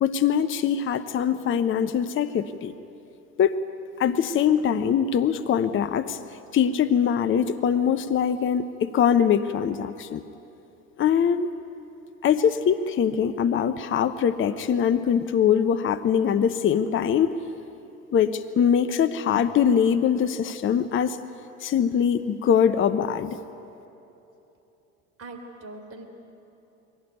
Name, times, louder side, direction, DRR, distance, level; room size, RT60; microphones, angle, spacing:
voice 1, 0.0-2.7 3.4-3.6 4.0-6.2 6.5-10.2 11.0-11.5 12.2-17.4 18.1-21.2 21.6-23.4, left 8 dB, 30° left, 11 dB, 0.9 m, -22 dB
voice 2, 25.2-26.0, right 2 dB, 35° right, 5 dB, 3.9 m, -41 dB
22.5 x 17.5 x 9.5 m, 2.9 s
figure-of-eight pair, 65°, 41 cm